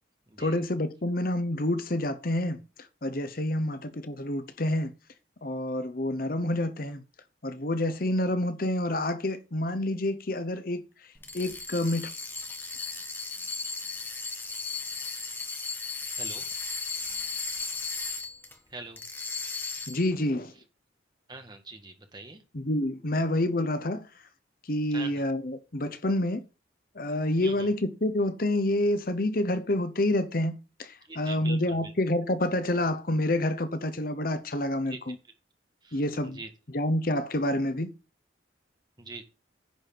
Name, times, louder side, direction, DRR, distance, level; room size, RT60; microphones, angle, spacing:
voice 1, 0.4-2.6 3.0-4.9 5.4-7.0 7.4-10.8 11.3-12.1 19.9-20.5 22.5-24.1 24.6-26.4 26.9-35.2 35.9-36.4 36.7-37.9, left 1 dB, 45° left, 0.9 m, -28 dB
sound 1, 11.2-18.6 19.0-20.1, left 4 dB, 10° left, 1.4 m, -36 dB
voice 2, 21.3-22.4 24.9-25.1 27.4-27.7 31.1-31.9 34.9-35.2 35.8-36.0 36.4-36.5 39.0-39.2, right 3 dB, 20° right, 1.7 m, -43 dB
10.0 x 4.8 x 7.5 m
head